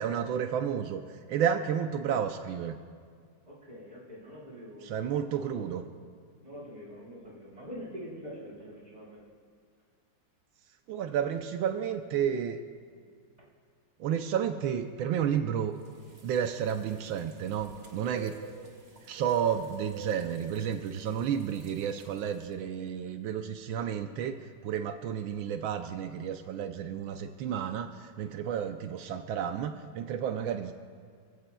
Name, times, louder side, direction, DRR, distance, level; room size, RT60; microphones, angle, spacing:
voice 1, 0.0-2.7 4.8-5.8 10.9-12.6 14.0-15.7 16.2-18.3 19.1-30.7, right 8 dB, 85° right, 7 dB, 1.4 m, -31 dB
voice 2, 3.5-5.8 6.4-9.2 12.9-13.0 17.8-18.3, equal, 20° right, -5 dB, 4.8 m, -45 dB
sound 1, 15.8-22.4, right 6 dB, 35° right, 1.3 m, -47 dB
27.5 x 15.5 x 2.3 m, 2.1 s
omnidirectional pair, 2.1 m